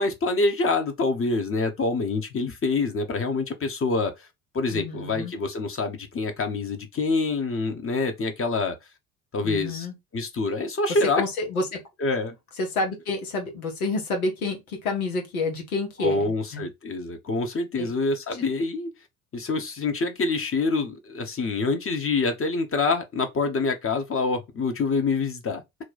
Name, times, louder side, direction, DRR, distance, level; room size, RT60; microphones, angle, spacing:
voice 1, 0.0-4.3 4.5-8.8 9.3-9.9 10.1-11.2 12.0-12.3 16.0-18.9 19.3-25.6, left 3 dB, 30° left, 1.0 m, -26 dB
voice 2, 4.7-5.3 9.4-9.9 11.2-11.8 12.6-16.7 17.8-17.9, left 3 dB, 90° left, 0.9 m, -29 dB
3.0 x 2.3 x 3.9 m
hypercardioid pair, 50°, 42 cm